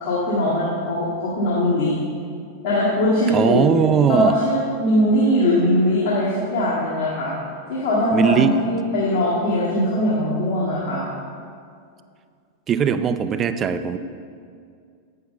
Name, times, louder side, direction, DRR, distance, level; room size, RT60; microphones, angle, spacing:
voice 1, 0.0-2.0 2.6-3.7 4.1-7.3 7.7-11.0, left 1 dB, 55° left, -7 dB, 1.5 m, -21 dB
voice 2, 3.3-4.3 8.1-8.5 12.7-14.0, right 7 dB, 25° right, 11 dB, 0.4 m, -19 dB
8.5 x 6.6 x 3.8 m, 2.2 s
figure-of-eight pair, 90°, 0 cm